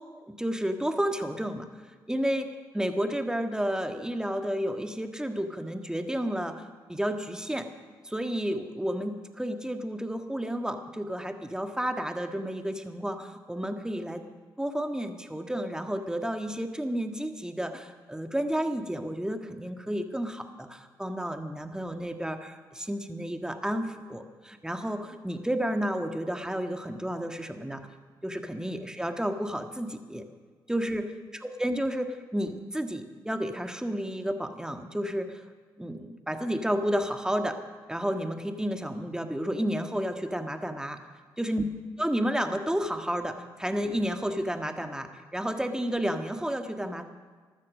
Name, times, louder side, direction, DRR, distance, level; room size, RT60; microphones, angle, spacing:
voice 1, 0.3-1.7 2.1-2.5 2.7-7.7 8.0-14.2 14.6-27.9 28.2-30.2 30.7-31.1 31.4-35.4 35.8-37.6 37.9-41.0 41.4-41.6 42.0-47.0, equal, 5° right, 6 dB, 1.7 m, -31 dB
14.5 x 12.5 x 6.4 m, 1.5 s
hypercardioid pair, 40°, 11 cm